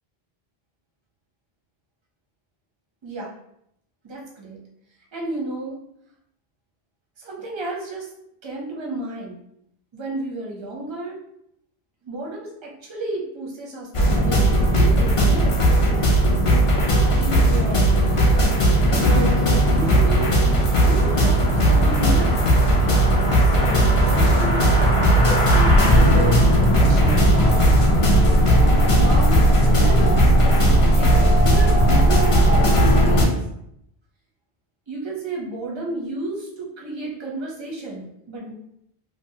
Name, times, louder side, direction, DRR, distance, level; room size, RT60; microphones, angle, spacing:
voice 1, 4.0-4.6 5.1-5.8 7.2-8.1 8.4-9.4 9.9-11.2 12.0-15.6 17.2-17.9 18.4-18.6 18.9-20.3 20.8-22.5 23.2-24.7 25.1-26.5 26.8-27.6 28.9-29.4 29.7-33.4 34.9-38.5, right 2 dB, 35° right, -2 dB, 0.5 m, -32 dB
sound 1, 13.9-33.3, right 1 dB, 45° left, 0.4 m, -17 dB
sound 2, 17.2-32.0, right 3 dB, 90° left, 0.9 m, -30 dB
2.9 x 2.1 x 2.6 m, 0.76 s
omnidirectional pair, 1.0 m